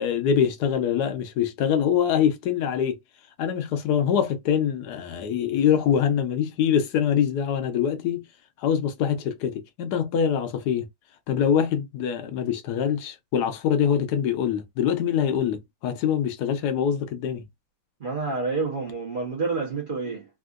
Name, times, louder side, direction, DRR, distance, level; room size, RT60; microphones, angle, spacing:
voice 1, 0.0-3.0 3.4-8.2 8.6-10.9 11.3-17.4, left 8 dB, 65° left, 1.2 m, -24 dB
voice 2, 18.0-20.3, right 4 dB, 45° right, 0.7 m, -28 dB
3.6 x 2.6 x 2.4 m
omnidirectional pair, 2.1 m